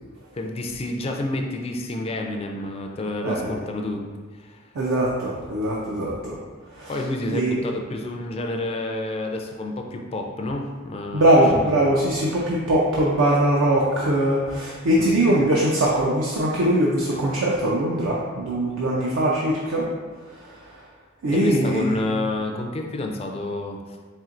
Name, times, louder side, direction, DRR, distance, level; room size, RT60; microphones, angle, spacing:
voice 1, 0.3-4.0 4.3-4.7 6.9-11.7 15.0-15.1 21.3-24.0, left 2 dB, 30° left, 2 dB, 0.3 m, -29 dB
voice 2, 3.2-3.6 4.8-6.4 6.7-7.0 7.3-7.6 11.1-19.9 20.3-20.8 21.2-22.1, right 1 dB, 75° right, -4 dB, 0.5 m, -21 dB
4.3 x 3.5 x 2.5 m, 1.4 s
head